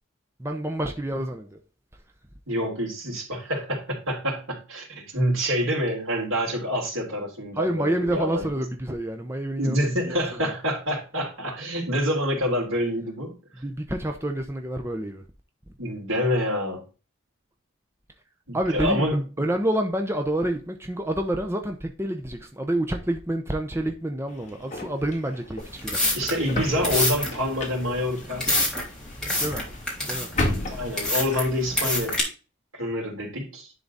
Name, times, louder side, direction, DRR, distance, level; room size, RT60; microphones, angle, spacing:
voice 1, 0.4-1.6 7.5-9.8 10.1-10.5 13.5-15.2 18.5-19.1 19.4-26.0 26.5-26.9 29.4-29.7 30.1-30.3, right 1 dB, 10° right, 0.7 m, -28 dB
voice 2, 2.5-8.5 9.6-13.4 15.8-16.8 18.5-19.2 26.1-28.5 30.7-32.2 32.7-33.7, equal, 80° right, 3.3 m, -27 dB
sound 1, 24.3-31.8, left 2 dB, 35° left, 2.0 m, -34 dB
sound 2, 25.6-32.2, left 1 dB, 5° left, 2.6 m, -27 dB
10.5 x 3.9 x 4.0 m
head